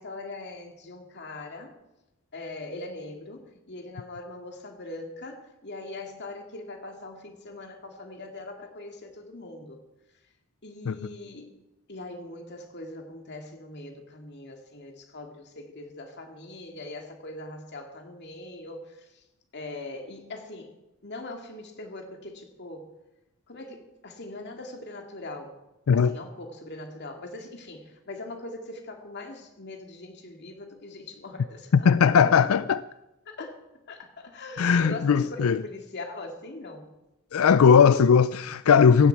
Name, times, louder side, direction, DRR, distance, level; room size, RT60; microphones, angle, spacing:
voice 1, 0.0-1.7 2.3-9.8 10.6-11.6 11.9-19.2 19.5-22.9 23.5-25.6 25.9-32.3 33.3-33.6 33.9-36.8, left 2 dB, 55° left, 2.3 m, -41 dB
voice 2, 31.9-32.8 34.6-35.6 37.3-39.1, left 6 dB, 75° left, 0.4 m, -18 dB
16.5 x 16.0 x 4.7 m
head